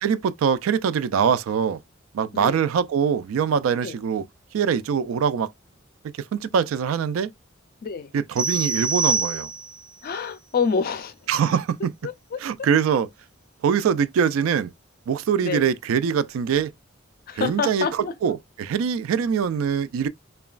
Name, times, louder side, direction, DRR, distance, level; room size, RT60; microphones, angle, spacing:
voice 1, 0.0-1.8 2.1-4.3 4.5-5.5 6.2-7.3 8.1-9.5 11.3-11.9 12.4-13.1 13.6-14.7 15.1-16.7 17.3-20.1, right 7 dB, 80° right, 0.3 m, -23 dB
voice 2, 7.8-8.1 10.0-11.1 12.0-12.4 15.4-15.7 17.3-18.1, left 5 dB, 45° left, 0.4 m, -27 dB
sound 1, 8.4-9.9, right 4 dB, 20° right, 0.5 m, -25 dB
2.9 x 2.2 x 2.3 m
head